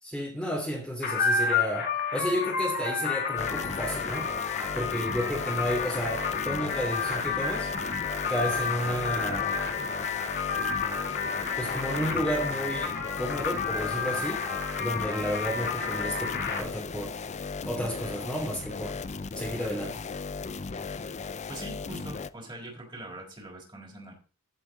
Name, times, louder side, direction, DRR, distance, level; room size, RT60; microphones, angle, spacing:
voice 1, 0.0-4.3 4.7-7.7 8.3-9.6 11.6-14.5 14.8-17.2 17.6-19.0 19.3-20.0, equal, 5° left, -2 dB, 2.9 m, -32 dB
sound 1, 1.0-16.6, left 5 dB, 50° left, 2.2 m, -31 dB
sound 2, 3.4-22.3, left 4 dB, 30° left, 0.5 m, -37 dB
voice 2, 21.5-24.1, right 1 dB, 20° right, 0 dB, 4.2 m, -43 dB
15.0 x 7.5 x 4.0 m, 0.36 s
head